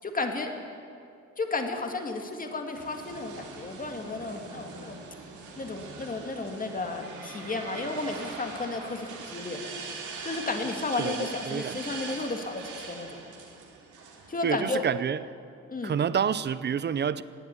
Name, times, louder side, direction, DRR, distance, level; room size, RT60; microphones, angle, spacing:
voice 1, 0.0-0.5 1.4-5.0 5.6-9.7 10.2-13.2 14.3-14.9 15.7-16.0, left 3 dB, 30° left, 2.0 m, -33 dB
sound 1, 2.7-14.7, right 4 dB, 80° right, 2.8 m, -42 dB
voice 2, 11.0-11.8 14.4-15.2 15.8-17.2, right 7 dB, 35° right, 0.6 m, -28 dB
18.5 x 7.8 x 9.5 m
cardioid pair, 90°, 30 cm